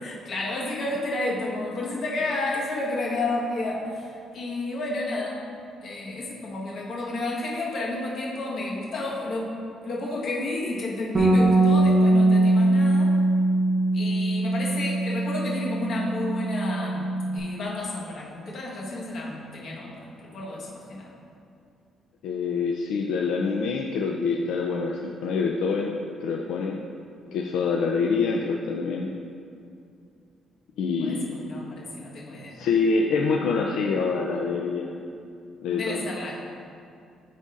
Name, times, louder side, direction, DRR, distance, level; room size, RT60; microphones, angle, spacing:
voice 1, 0.0-5.4 5.8-13.1 13.9-21.1 31.0-32.6 35.7-36.3, left 2 dB, 55° left, -4 dB, 1.3 m, -31 dB
Bass guitar, 11.1-17.4, right 2 dB, 25° right, 1.0 m, -21 dB
voice 2, 22.2-25.9 26.2-26.8 27.3-29.1 30.8-31.6 32.5-34.9 35.6-36.1, left 4 dB, 85° left, 0 dB, 0.4 m, -26 dB
12.0 x 4.0 x 2.5 m, 2.4 s
cardioid pair, 155°, 0 cm